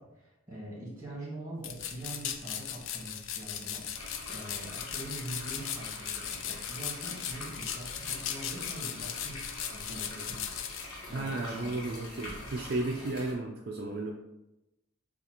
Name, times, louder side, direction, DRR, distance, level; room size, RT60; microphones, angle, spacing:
voice 1, 0.0-10.4 10.7-11.8 12.1-12.3, right 1 dB, 15° right, -5 dB, 1.5 m, -44 dB
sound 1, 1.6-10.9, left 9 dB, 60° left, 0.4 m, -38 dB
sound 2, 3.9-13.3, left 2 dB, 90° left, 1.1 m, -45 dB
voice 2, 11.1-14.1, right 2 dB, 45° right, 0 dB, 0.4 m, -34 dB
6.7 x 2.4 x 2.8 m, 0.94 s
head